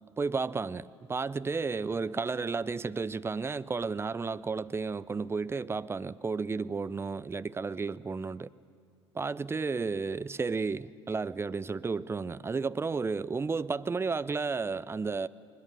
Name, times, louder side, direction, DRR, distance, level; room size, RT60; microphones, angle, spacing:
voice 1, 0.2-8.5 9.1-15.3, right 4 dB, 15° right, 17 dB, 0.5 m, -32 dB
21.5 x 20.5 x 8.1 m, 2.3 s
figure-of-eight pair, 60°, 15 cm